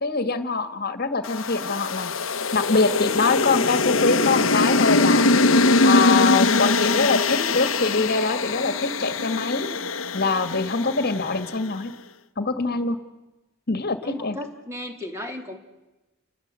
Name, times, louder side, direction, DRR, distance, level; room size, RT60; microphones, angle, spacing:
voice 1, 0.0-2.1 2.5-5.3 5.9-9.7 10.1-11.9 12.4-13.0 13.7-14.4, left 3 dB, 50° left, 11 dB, 1.8 m, -24 dB
sound 1, 1.2-11.6, left 3 dB, 65° left, 1.1 m, -22 dB
voice 2, 14.0-15.6, left 1 dB, 15° right, 4 dB, 3.1 m, -35 dB
29.5 x 21.0 x 8.4 m, 1.1 s
head